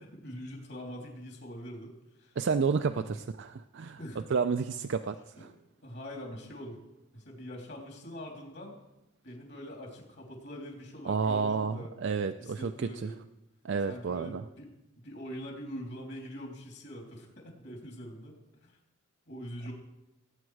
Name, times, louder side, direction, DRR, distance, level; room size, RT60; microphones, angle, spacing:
voice 1, 0.0-2.4 2.9-3.2 4.0-4.3 5.4-5.6 5.8-6.8 7.1-8.7 9.2-11.9 12.4-13.2 13.9-14.7 15.0-18.3 18.6-18.8 19.3-19.7, equal, 55° left, 1 dB, 3.1 m, -43 dB
voice 2, 2.4-4.0 4.3-5.5 11.1-13.1 13.6-14.4, right 5 dB, 55° right, 8 dB, 0.4 m, -30 dB
19.0 x 8.7 x 4.7 m, 0.94 s
head